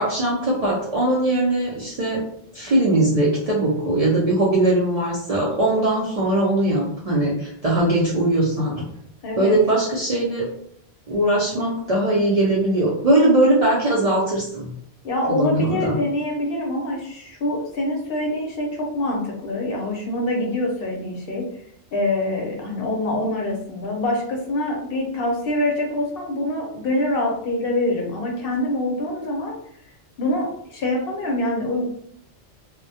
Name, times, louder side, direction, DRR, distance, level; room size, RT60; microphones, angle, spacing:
voice 1, 0.0-2.2 2.5-8.7 9.4-10.5 11.1-14.7 15.3-16.0, right 1 dB, 50° right, -5 dB, 0.5 m, -20 dB
voice 2, 9.2-9.6 15.0-21.5 21.9-29.6 30.2-31.8, left 1 dB, 65° left, 0 dB, 0.8 m, -25 dB
2.2 x 2.1 x 2.7 m, 0.66 s
omnidirectional pair, 1.1 m